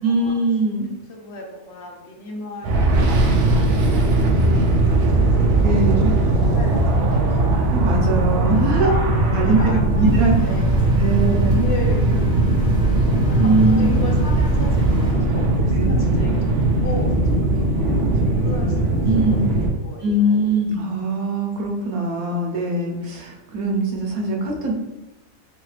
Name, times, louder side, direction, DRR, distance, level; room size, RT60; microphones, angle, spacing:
voice 1, 0.0-0.9 5.6-6.1 7.7-8.9 9.3-10.3 11.0-11.7 13.4-14.0 15.7-15.9 19.1-19.4 20.0-24.7, right 2 dB, 85° right, 0 dB, 1.3 m, -21 dB
voice 2, 1.1-5.6 6.4-7.4 8.6-11.0 11.6-12.4 13.3-14.9 15.2-20.4, left 2 dB, 60° left, 0 dB, 0.8 m, -35 dB
sound 1, 2.6-19.7, right 2 dB, 65° right, 0.9 m, -19 dB
sound 2, 10.0-15.1, right 1 dB, 5° right, 0.8 m, -33 dB
3.5 x 3.3 x 3.2 m, 1.0 s
omnidirectional pair, 1.5 m